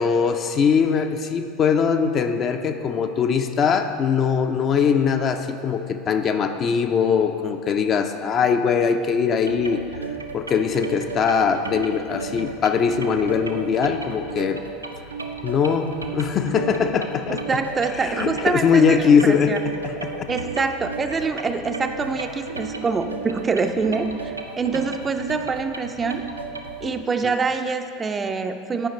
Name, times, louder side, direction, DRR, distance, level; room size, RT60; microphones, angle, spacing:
voice 1, 0.0-9.8 10.3-14.6 15.4-15.9 16.1-17.4 17.9-19.5 19.8-20.3, left 6 dB, 35° left, 7 dB, 0.4 m, -21 dB
sound 1, 9.5-26.9, right 4 dB, 90° right, 0.4 m, -34 dB
voice 2, 17.5-19.6 20.3-26.2 26.8-28.9, right 4 dB, 20° right, 7 dB, 0.4 m, -25 dB
8.9 x 5.0 x 4.2 m, 2.3 s
figure-of-eight pair, 75°, 0 cm